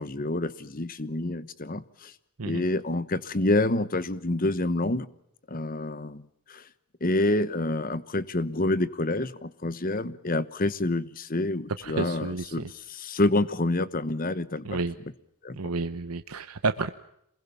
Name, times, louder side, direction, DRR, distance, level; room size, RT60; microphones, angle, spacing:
voice 1, 0.0-2.1 2.4-5.1 5.5-6.2 6.5-6.6 7.0-14.8 15.4-15.6, left 2 dB, 40° left, 16 dB, 1.1 m, -28 dB
voice 2, 11.8-12.7 14.6-14.9 15.5-16.9, right 3 dB, 85° right, 10 dB, 1.0 m, -30 dB
27.5 x 21.5 x 7.2 m, 0.78 s
head